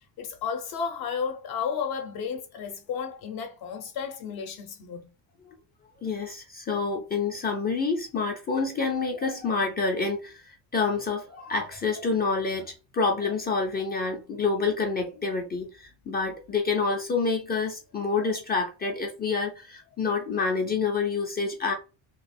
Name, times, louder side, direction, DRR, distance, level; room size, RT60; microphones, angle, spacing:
voice 1, 0.2-5.1, left 6 dB, 55° left, 0.7 m, -33 dB
voice 2, 6.0-21.7, left 4 dB, 20° left, 0.4 m, -28 dB
3.0 x 2.3 x 4.2 m
cardioid pair, 160°, 45 cm